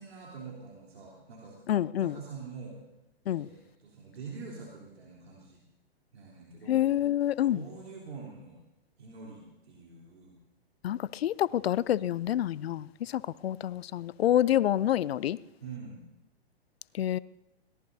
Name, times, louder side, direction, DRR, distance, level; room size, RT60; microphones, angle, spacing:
voice 1, 0.0-1.6 1.9-2.8 3.3-5.6 6.1-6.8 7.5-8.6 9.0-10.4 15.6-16.0, right 5 dB, 75° right, 3.6 m, -45 dB
voice 2, 1.7-2.1 3.3-3.5 6.7-7.6 10.8-15.4 17.0-17.2, left 11 dB, 70° left, 0.5 m, -27 dB
22.0 x 17.5 x 2.8 m
hypercardioid pair, 125°, 32 cm